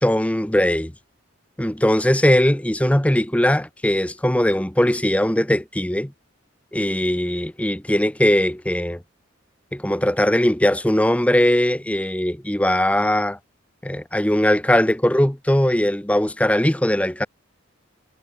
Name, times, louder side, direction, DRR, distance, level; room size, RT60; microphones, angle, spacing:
voice 1, 0.0-0.9 1.6-6.1 6.7-9.0 9.7-13.4 13.8-17.3, left 1 dB, 5° left, 1.0 m, -20 dB
head